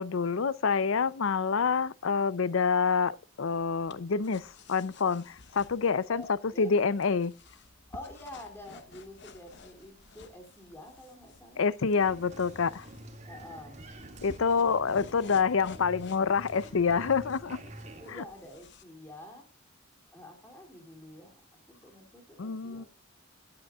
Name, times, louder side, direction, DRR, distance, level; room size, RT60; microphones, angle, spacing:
voice 1, 0.0-7.3 11.6-12.9 14.2-17.6 18.1-18.2 22.4-22.8, left 5 dB, 75° left, 0.6 m, -27 dB
sound 1, 3.3-18.8, left 3 dB, 60° left, 0.9 m, -53 dB
voice 2, 6.0-6.7 7.9-11.7 13.3-13.8 17.8-19.4 20.1-22.9, left 1 dB, 10° left, 2.8 m, -48 dB
Applause, 12.0-18.1, right 1 dB, 35° right, 2.1 m, -48 dB
19.0 x 8.8 x 2.4 m
head